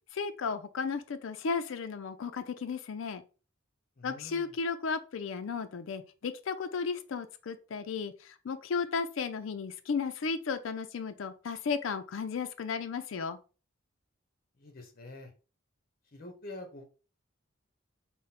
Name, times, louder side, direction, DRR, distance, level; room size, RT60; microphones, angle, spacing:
voice 1, 0.1-3.2 4.0-13.4, left 5 dB, 70° left, 0.4 m, -34 dB
voice 2, 4.0-4.5 14.6-15.3 16.1-16.8, left 2 dB, 45° left, 1.0 m, -46 dB
3.8 x 2.1 x 4.1 m
head